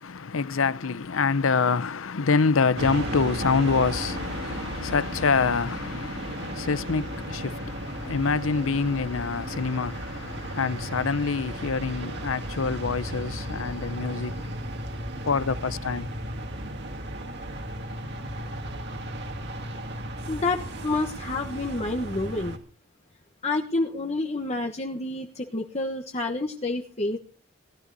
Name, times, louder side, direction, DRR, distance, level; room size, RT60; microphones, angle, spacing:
voice 1, 0.0-14.6 15.3-16.1, left 4 dB, 75° left, 0.7 m, -26 dB
sound 1, 2.7-22.6, right 1 dB, 55° right, 2.3 m, -35 dB
voice 2, 20.3-22.6 23.4-27.2, left 2 dB, 35° left, 1.3 m, -29 dB
18.5 x 12.5 x 4.1 m
head